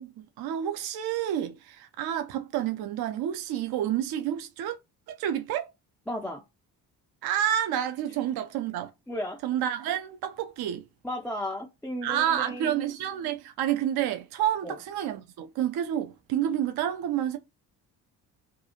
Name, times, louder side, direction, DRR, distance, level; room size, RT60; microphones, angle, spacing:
voice 1, 0.0-4.8 5.1-5.7 7.2-8.9 9.4-10.9 12.0-17.4, right 10 dB, 50° right, 0.5 m, -29 dB
voice 2, 6.1-6.4 9.1-9.4 11.0-12.8 14.6-14.8, left 1 dB, 5° left, 0.4 m, -34 dB
2.6 x 2.3 x 2.8 m
hypercardioid pair, 45°, 48 cm